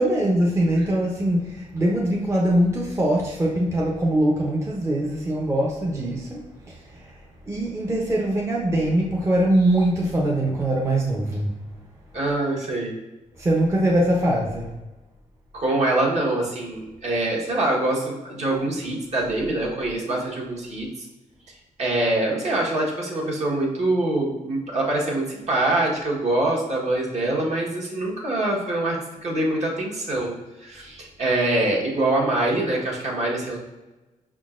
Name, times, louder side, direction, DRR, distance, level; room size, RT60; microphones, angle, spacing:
voice 1, 0.0-7.2 7.5-11.5 13.4-14.7, right 1 dB, 20° right, -2 dB, 0.6 m, -22 dB
voice 2, 12.1-12.9 15.5-20.9 21.8-33.6, right 2 dB, 55° right, -3 dB, 1.3 m, -24 dB
5.6 x 3.7 x 2.5 m, 1.1 s
cardioid pair, 120°, 14 cm